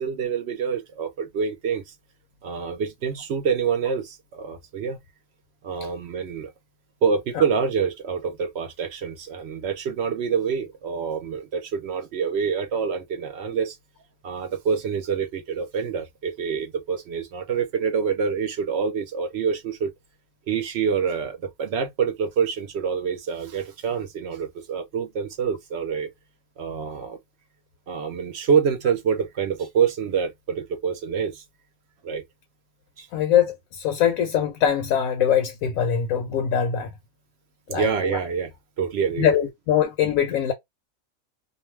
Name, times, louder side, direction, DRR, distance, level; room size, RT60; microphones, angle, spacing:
voice 1, 0.0-1.9 2.4-5.0 5.6-6.5 7.0-13.8 14.2-19.9 20.5-26.1 26.6-27.2 27.9-31.4 32.0-32.2 33.0-33.1 37.7-39.3, right 6 dB, 65° right, 0.7 m, -26 dB
voice 2, 33.1-36.9 37.7-38.2 39.2-40.5, left 9 dB, 80° left, 1.0 m, -22 dB
2.5 x 2.1 x 3.0 m
omnidirectional pair, 1.4 m